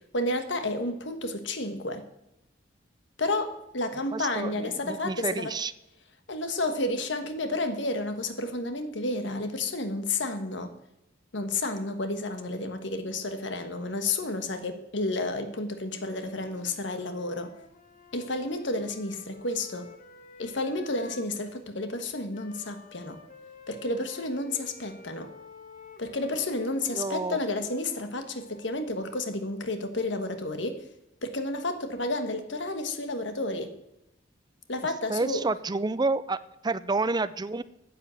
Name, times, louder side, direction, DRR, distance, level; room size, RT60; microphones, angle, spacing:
voice 1, 0.1-2.1 3.2-5.5 6.3-10.7 11.3-17.5 18.1-19.9 20.4-23.2 23.7-25.3 26.0-30.8 31.2-33.7 34.7-35.4, left 2 dB, 70° left, 8 dB, 1.4 m, -31 dB
voice 2, 4.1-5.7 26.9-27.4 35.1-37.6, right 3 dB, 20° right, 15 dB, 0.5 m, -29 dB
Wind instrument woodwind instrument, 15.8-21.6 22.3-28.8, left 4 dB, 45° left, 1.4 m, -51 dB
10.0 x 8.8 x 7.6 m, 0.89 s
head